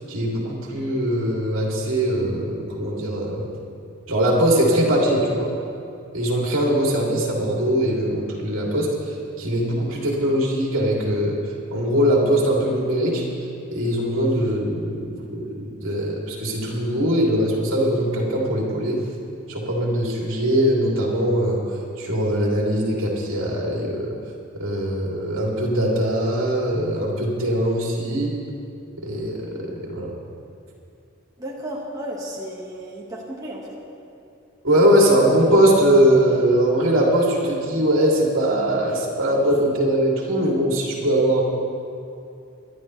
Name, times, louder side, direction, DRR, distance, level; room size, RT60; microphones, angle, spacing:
voice 1, 0.1-3.5 4.1-5.5 6.1-13.2 13.7-19.0 19.5-24.1 24.5-28.3 29.0-30.1 34.6-41.4, right 1 dB, 70° right, -3 dB, 3.0 m, -21 dB
voice 2, 31.4-33.6, right 1 dB, 15° right, -5 dB, 1.6 m, -33 dB
24.5 x 11.5 x 3.3 m, 2.6 s
head